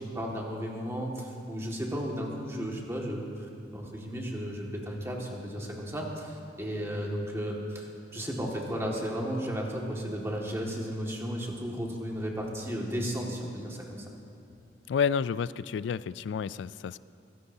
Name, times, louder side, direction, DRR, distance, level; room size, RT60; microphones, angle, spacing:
voice 1, 0.0-3.3 3.7-14.0, equal, 15° right, -2 dB, 1.9 m, -34 dB
voice 2, 14.9-17.0, left 6 dB, 85° left, 17 dB, 0.3 m, -30 dB
22.5 x 17.0 x 2.8 m, 2.7 s
head